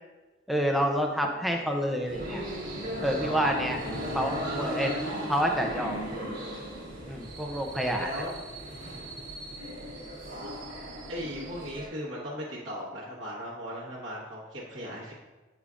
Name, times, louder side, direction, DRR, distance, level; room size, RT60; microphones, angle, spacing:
voice 1, 0.5-2.4 3.0-3.8 4.1-4.9 5.3-6.0 7.1-8.1, equal, ahead, 1 dB, 0.5 m, -28 dB
sound 1, 0.6-5.6, left 1 dB, 40° left, 1.7 m, -49 dB
sound 2, 2.1-11.9, equal, 50° right, 1.7 m, -37 dB
voice 2, 4.4-5.0 7.9-8.3 10.3-10.5 11.1-15.1, equal, 65° right, -7 dB, 1.3 m, -37 dB
8.1 x 5.0 x 2.4 m, 1.2 s
head